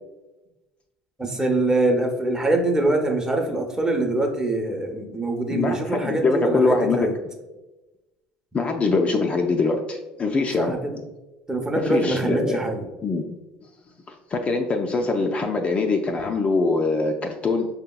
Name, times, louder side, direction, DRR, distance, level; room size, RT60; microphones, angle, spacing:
voice 1, 1.2-7.1 10.6-10.9 11.5-12.8, right 2 dB, 15° right, 3 dB, 0.7 m, -24 dB
voice 2, 5.5-7.1 8.5-10.7 11.8-12.6 13.0-13.2 14.3-17.7, left 3 dB, 30° left, 3 dB, 0.4 m, -23 dB
4.9 x 2.8 x 2.2 m, 1.1 s
hypercardioid pair, 80°, 4 cm